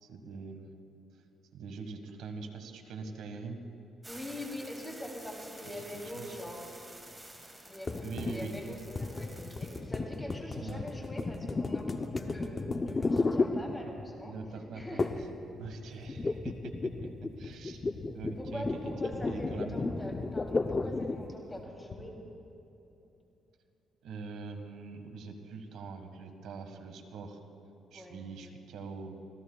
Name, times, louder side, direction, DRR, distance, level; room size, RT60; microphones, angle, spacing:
voice 1, 0.0-0.6 1.5-3.6 5.9-6.3 8.0-8.5 10.5-10.9 14.2-15.0 15.6-17.8 18.1-19.8 24.0-27.4 27.9-29.2, right 4 dB, 80° right, 6 dB, 1.5 m, -43 dB
sound 1, 4.0-9.8, right 1 dB, 10° right, 2.2 m, -50 dB
voice 2, 4.1-6.7 7.6-14.3 14.7-15.2 18.4-22.1 27.9-28.2, left 1 dB, 15° left, -1 dB, 2.9 m, -43 dB
sound 2, 7.9-14.2 15.0-15.4 15.6-21.3, left 3 dB, 30° left, 0.6 m, -34 dB
sound 3, 9.2-9.3 9.8-9.9 10.3-10.4 10.8-10.9 11.3-11.4 11.8-11.9 12.3-12.4 12.8-12.9 13.2-13.3 13.6-13.7 14.0-14.1 14.4-14.5 14.8-15.3 15.6-15.7 16.1-16.2 16.5-16.6 17.0-17.1 17.4-17.6 17.9-18.0 18.3-18.4 18.7-18.8 19.1-19.2 19.5-19.7 19.9-20.3 20.6-20.7 20.9-21.3 21.6-22.0, left 5 dB, 50° left, 1.5 m, -49 dB
26.0 x 16.5 x 2.3 m, 3.0 s
cardioid pair, 90°, 0 cm